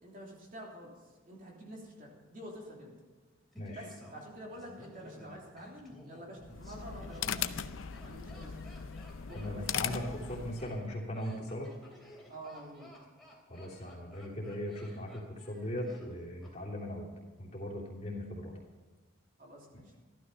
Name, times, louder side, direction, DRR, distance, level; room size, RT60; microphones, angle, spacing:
voice 1, 0.0-3.0 3.7-7.7 8.0-8.6 9.3-10.1 12.3-12.9 19.4-20.0, equal, 40° right, -2 dB, 3.2 m, -48 dB
Laughter, 3.5-16.5 16.8-16.9, left 1 dB, ahead, 3.3 m, -56 dB
sound 1, 6.4-10.9, left 8 dB, 70° left, 0.6 m, -39 dB
voice 2, 9.3-11.7 13.5-17.1 17.4-18.5 19.7-19.8, left 1 dB, 35° left, -2 dB, 3.1 m, -39 dB
15.0 x 13.0 x 5.7 m, 1.3 s
head